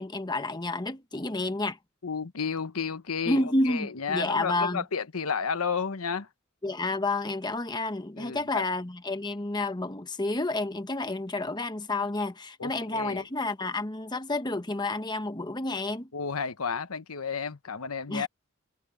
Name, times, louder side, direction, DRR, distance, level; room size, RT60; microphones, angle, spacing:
voice 1, 0.0-1.8 3.3-4.8 6.6-16.1 18.1-18.3, left 2 dB, 20° left, 1.0 m, -30 dB
voice 2, 2.0-6.3 8.2-8.7 12.6-13.2 16.1-18.3, left 5 dB, 85° left, 1.0 m, -32 dB
head